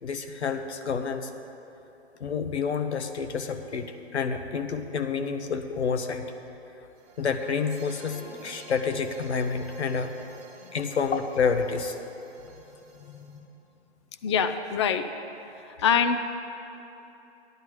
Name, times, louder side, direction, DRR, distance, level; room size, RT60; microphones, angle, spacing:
voice 1, 0.0-1.3 2.2-6.3 7.2-10.1 10.7-12.0, left 5 dB, 75° left, 7 dB, 0.9 m, -29 dB
sound 1, 7.0-13.4, right 4 dB, 20° right, 1.3 m, -49 dB
voice 2, 13.0-13.5 14.2-15.1 15.7-16.3, left 7 dB, 25° left, 9 dB, 0.3 m, -26 dB
14.0 x 10.5 x 3.1 m, 2.9 s
figure-of-eight pair, 120°, 33 cm